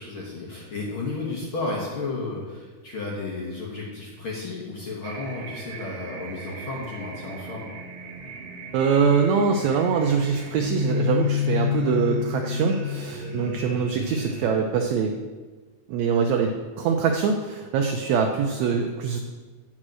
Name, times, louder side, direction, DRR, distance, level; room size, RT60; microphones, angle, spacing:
voice 1, 0.0-7.7, left 3 dB, 55° left, -4 dB, 1.6 m, -33 dB
sound 1, 5.0-14.4, left 6 dB, 60° right, 2.2 m, -31 dB
voice 2, 8.7-15.1 15.9-19.2, right 6 dB, 80° right, 3 dB, 1.6 m, -23 dB
8.6 x 5.2 x 6.2 m, 1.4 s
omnidirectional pair, 3.8 m